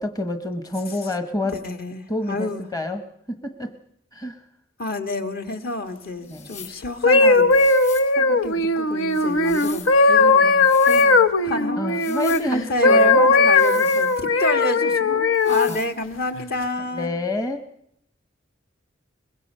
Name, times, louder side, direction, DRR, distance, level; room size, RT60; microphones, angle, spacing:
voice 1, 0.0-1.6 2.1-3.0 3.3-3.7 4.1-4.4 6.3-6.5 11.8-13.2 15.7-15.8 16.9-17.7, left 1 dB, 20° left, 7 dB, 1.1 m, -27 dB
voice 2, 1.4-2.7 4.8-7.6 8.2-12.1 12.5-17.1, left 2 dB, 50° left, 6 dB, 1.7 m, -29 dB
sound 1, 6.2-6.8 7.5-8.1 9.1-10.0 10.5-11.1 11.9-12.5 13.5-14.5 15.3-15.9, left 7 dB, 35° left, 3.3 m, -41 dB
sound 2, 6.8-12.4 12.8-15.7 16.4-16.6, left 3 dB, 90° left, 1.0 m, -17 dB
23.0 x 21.5 x 5.5 m, 0.74 s
head